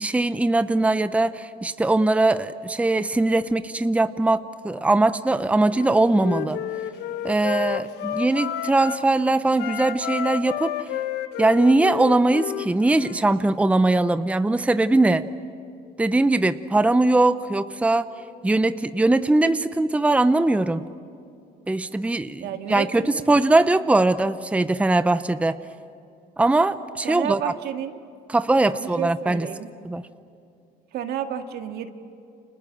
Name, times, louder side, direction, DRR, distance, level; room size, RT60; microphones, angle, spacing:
voice 1, 0.0-6.6 7.2-10.9 11.4-15.2 16.0-18.1 18.4-20.9 21.7-25.6 26.4-27.4 28.3-29.5 29.8-30.0, right 2 dB, 10° right, 12 dB, 0.7 m, -21 dB
Wind instrument woodwind instrument, 5.7-9.1 9.5-13.2, left 11 dB, 85° left, 1.2 m, -31 dB
voice 2, 22.4-23.3 27.0-27.9 28.7-29.7 30.9-31.9, right 9 dB, 75° right, 7 dB, 1.9 m, -31 dB
30.0 x 27.0 x 7.3 m, 2.6 s
cardioid pair, 110°, 17 cm